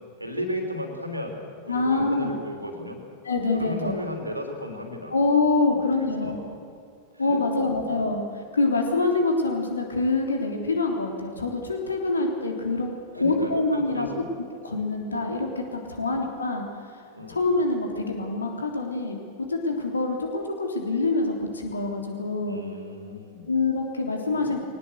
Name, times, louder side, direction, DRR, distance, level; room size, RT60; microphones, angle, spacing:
voice 1, 0.2-3.0 3.5-5.1 5.7-6.3 7.1-8.0 13.1-14.2 16.1-16.2 17.1-17.4 22.5-23.5 24.2-24.6, left 1 dB, 85° right, 4 dB, 3.3 m, -35 dB
voice 2, 1.7-2.3 3.2-3.9 5.1-6.4 7.2-8.2 8.5-12.9 13.1-14.1 14.6-16.7 17.3-19.2 19.5-22.6 23.5-24.6, left 3 dB, 75° left, 2 dB, 3.3 m, -25 dB
21.5 x 18.5 x 8.2 m, 2.3 s
figure-of-eight pair, 90°, 0 cm